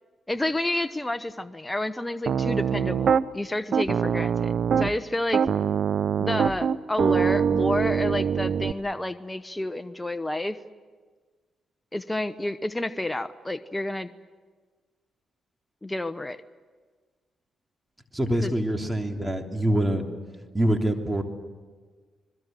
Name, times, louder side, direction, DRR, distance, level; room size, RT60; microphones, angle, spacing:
voice 1, 0.3-5.4 6.2-10.6 11.9-14.1 15.8-16.4 18.4-18.5, left 1 dB, 15° left, 12 dB, 1.0 m, -30 dB
Piano, 2.3-3.2 3.7-5.0 5.3-8.7, right 7 dB, 65° right, 0.6 m, -24 dB
voice 2, 18.1-20.1 20.5-21.2, right 1 dB, 15° right, 4 dB, 3.2 m, -25 dB
28.0 x 21.5 x 7.7 m, 1.4 s
supercardioid pair, 55°, 0 cm